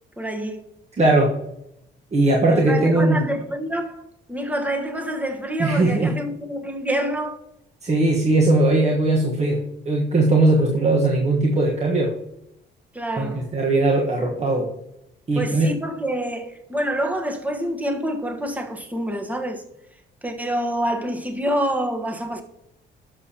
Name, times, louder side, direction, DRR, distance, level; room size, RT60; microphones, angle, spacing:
voice 1, 0.2-0.7 2.5-4.0 4.3-7.4 12.9-13.4 15.3-19.6 20.2-22.4, right 1 dB, 5° right, 1.3 m, -27 dB
voice 2, 1.0-1.4 2.1-3.2 5.6-6.1 7.8-12.1 13.2-14.7 15.3-15.7, right 2 dB, 35° right, 1.4 m, -19 dB
12.0 x 6.8 x 2.9 m
cardioid pair, 90°, 20 cm